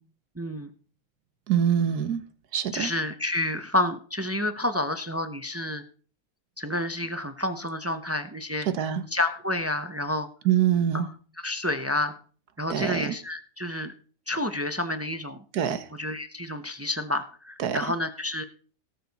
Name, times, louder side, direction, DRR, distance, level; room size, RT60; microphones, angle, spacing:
voice 1, 0.4-0.7 2.7-5.8 6.6-8.7 9.1-10.3 10.9-11.1 11.4-12.1 12.6-13.9 14.3-15.4 16.0-18.4, left 1 dB, 20° right, 9 dB, 0.4 m, -29 dB
voice 2, 1.5-2.2 2.5-2.9 8.7-9.0 10.4-11.1 12.7-13.1 15.5-15.9 17.6-17.8, right 9 dB, 90° right, 12 dB, 1.5 m, -24 dB
17.5 x 6.7 x 4.1 m, 0.41 s
omnidirectional pair, 1.6 m